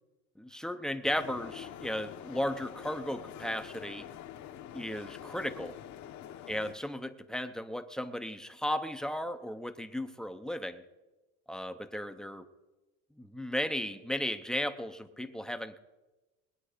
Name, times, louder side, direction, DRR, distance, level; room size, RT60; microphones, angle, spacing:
voice 1, 0.4-4.1 4.7-5.7 6.5-10.8 11.5-12.5 13.2-15.8, left 1 dB, ahead, 8 dB, 0.6 m, -35 dB
sound 1, 1.0-6.7, left 10 dB, 50° left, 1.0 m, -46 dB
21.0 x 9.0 x 5.0 m, 1.1 s
cardioid pair, 145°, 35 cm